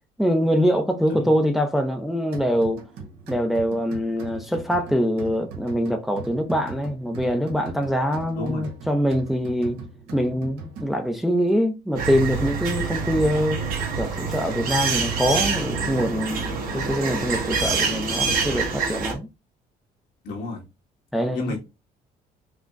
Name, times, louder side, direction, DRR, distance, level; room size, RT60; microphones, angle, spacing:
voice 1, 0.2-2.8 3.3-9.8 10.1-13.6 14.0-19.3 21.1-21.6, equal, ahead, 0.6 m, -24 dB
sound 1, 2.3-11.2, right 4 dB, 80° right, 1.4 m, -40 dB
voice 2, 8.3-8.7 20.2-20.6 21.3-21.6, left 2 dB, 85° left, 1.8 m, -30 dB
sound 2, 12.0-19.1, right 5 dB, 60° right, 1.5 m, -26 dB
4.9 x 2.1 x 3.6 m
cardioid pair, 110°, 17 cm